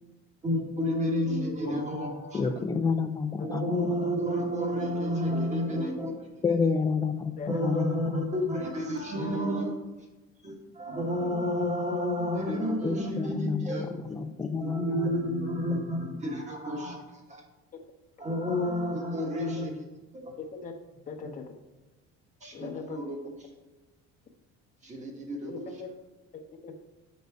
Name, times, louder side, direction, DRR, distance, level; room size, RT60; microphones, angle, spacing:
voice 1, 0.4-2.4 3.4-6.2 7.5-9.7 10.4-13.9 14.6-17.4 18.2-19.9 20.2-20.3 21.2-21.3 22.4-23.5 24.8-25.7, equal, 25° right, 2 dB, 1.3 m, -30 dB
voice 2, 2.3-4.1 6.4-7.3 7.6-8.2 12.8-15.2, left 5 dB, 15° left, 7 dB, 0.4 m, -29 dB
voice 3, 7.4-7.8 11.3-11.4 20.4-20.7 21.1-21.4 22.5-23.0 25.5-25.9 26.3-26.7, left 4 dB, 30° left, 2 dB, 0.9 m, -39 dB
7.9 x 5.2 x 3.5 m, 1.2 s
cardioid pair, 165°, 29 cm